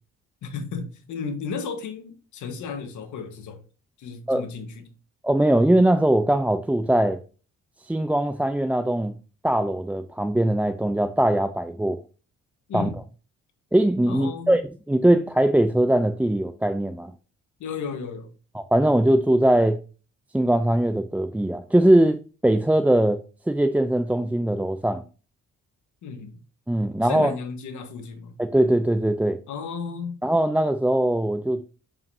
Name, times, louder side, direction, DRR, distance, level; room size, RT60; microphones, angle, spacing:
voice 1, 0.4-3.6 4.0-4.9 12.7-13.0 14.1-14.6 17.6-18.3 26.0-26.4 27.0-28.4 29.5-30.2, left 5 dB, 75° left, 1.5 m, -34 dB
voice 2, 5.2-7.2 7.8-9.1 9.4-12.0 12.7-12.9 13.7-14.6 14.9-17.1 18.5-19.8 20.3-23.2 23.5-25.0 26.7-27.3 28.4-29.4 30.2-31.6, right 1 dB, 5° right, 0.4 m, -21 dB
7.2 x 5.4 x 2.7 m
cardioid pair, 90°, 30 cm